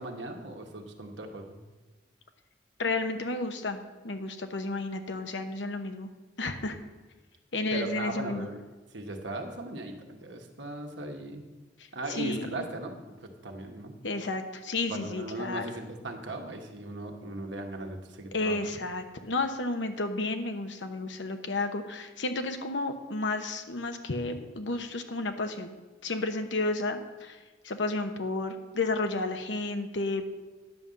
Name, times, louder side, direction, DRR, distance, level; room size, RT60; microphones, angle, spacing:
voice 1, 0.0-1.5 7.7-8.6 8.9-11.5 11.9-13.9 14.9-18.6, right 2 dB, 75° right, 4 dB, 1.4 m, -38 dB
voice 2, 2.8-6.1 6.4-6.8 7.5-8.5 11.8-12.6 14.0-15.7 18.3-25.8 26.0-27.4 27.6-30.3, left 2 dB, 75° left, 7 dB, 1.0 m, -32 dB
10.5 x 5.5 x 7.5 m, 1.3 s
head